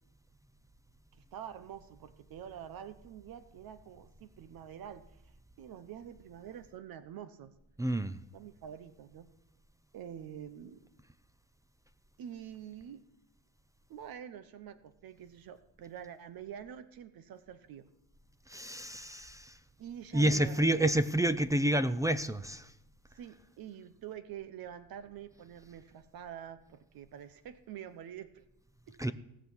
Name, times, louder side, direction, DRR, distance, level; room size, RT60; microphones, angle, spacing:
voice 1, 1.1-5.3 5.6-7.5 8.3-9.3 9.9-10.9 12.2-13.0 13.9-17.9 19.8-21.0 23.1-28.5 28.9-29.0, right 9 dB, 65° right, 0.9 m, -47 dB
voice 2, 7.8-8.2 18.5-19.6 20.1-22.7 29.0-29.1, right 1 dB, 10° right, 0.6 m, -29 dB
18.0 x 6.2 x 7.1 m
cardioid pair, 95°, 38 cm